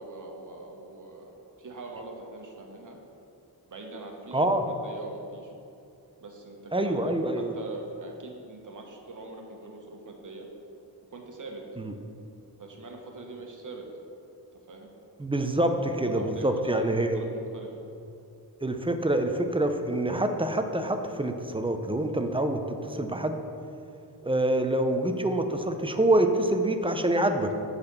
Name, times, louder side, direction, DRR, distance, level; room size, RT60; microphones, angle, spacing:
voice 1, 0.0-1.3 1.6-3.0 3.7-4.6 4.8-5.5 6.2-7.0 7.3-10.5 11.1-11.6 12.6-13.9 14.7-14.9 15.5-17.8, right 2 dB, 50° right, 1 dB, 1.3 m, -43 dB
voice 2, 4.3-4.6 6.7-7.5 11.8-11.9 15.2-17.2 18.6-23.4 24.2-27.5, right 1 dB, 15° right, 6 dB, 0.6 m, -26 dB
8.6 x 4.1 x 6.9 m, 2.6 s
wide cardioid pair, 95°, 39 cm